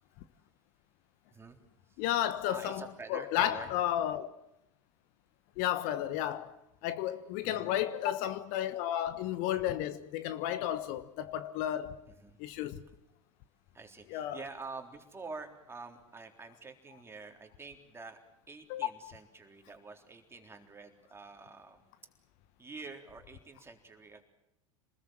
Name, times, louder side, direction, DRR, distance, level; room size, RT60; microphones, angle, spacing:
voice 1, 2.0-2.8 3.1-4.3 5.6-6.5 6.8-12.0 12.4-12.9 14.1-14.4 18.7-19.1, left 12 dB, 55° left, 1.2 m, -32 dB
voice 2, 2.5-3.7 6.2-6.3 7.4-7.7 12.2-12.4 13.7-18.2 18.5-21.8 22.6-24.2, right 4 dB, 15° right, 3.7 m, -47 dB
27.0 x 20.5 x 7.6 m
figure-of-eight pair, 80°, 17 cm